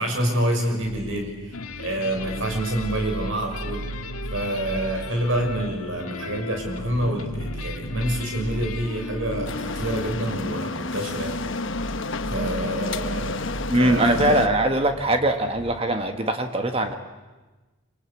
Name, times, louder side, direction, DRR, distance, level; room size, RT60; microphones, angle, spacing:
voice 1, 0.0-3.8 4.3-11.4 12.3-13.5 13.8-14.4, right 1 dB, 65° right, 3 dB, 5.9 m, -27 dB
sub bass, 0.8-15.8, right 2 dB, 40° right, 2.0 m, -37 dB
sound 1, 1.5-10.6, left 3 dB, 90° left, 2.0 m, -37 dB
sound 2, 9.5-14.5, left 3 dB, 60° left, 1.1 m, -30 dB
voice 2, 13.7-17.0, right 1 dB, 25° right, 6 dB, 1.5 m, -21 dB
26.0 x 25.0 x 8.5 m, 1.2 s
head